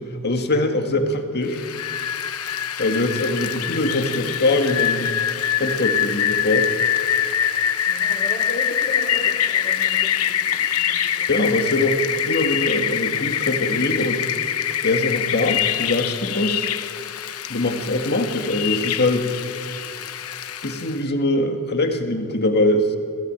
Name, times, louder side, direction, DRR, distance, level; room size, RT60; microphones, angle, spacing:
voice 1, 0.0-1.6 2.8-5.1 5.6-6.7 11.3-14.2 14.8-16.7 17.5-19.3 20.6-23.0, left 2 dB, 50° left, 6 dB, 2.0 m, -22 dB
Rain, 1.5-21.0, left 9 dB, 80° left, 1.0 m, -24 dB
voice 2, 7.9-11.3, left 1 dB, 35° left, 1 dB, 4.8 m, -35 dB
27.0 x 18.0 x 9.0 m, 2.4 s
head